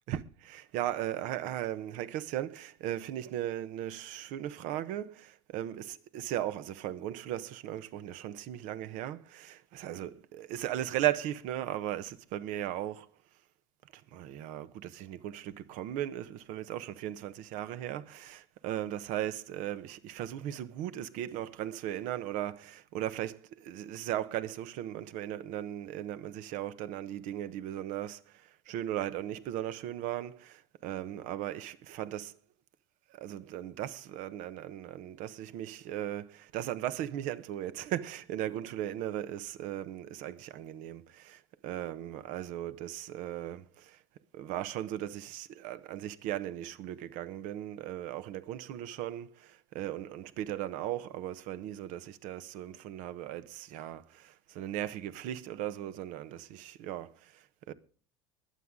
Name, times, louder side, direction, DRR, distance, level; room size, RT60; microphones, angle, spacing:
voice 1, 0.1-13.1 13.9-32.3 33.1-44.0 44.3-57.7, right 12 dB, 60° right, 1.1 m, -37 dB
22.0 x 8.3 x 3.7 m
hypercardioid pair, 80°, 15 cm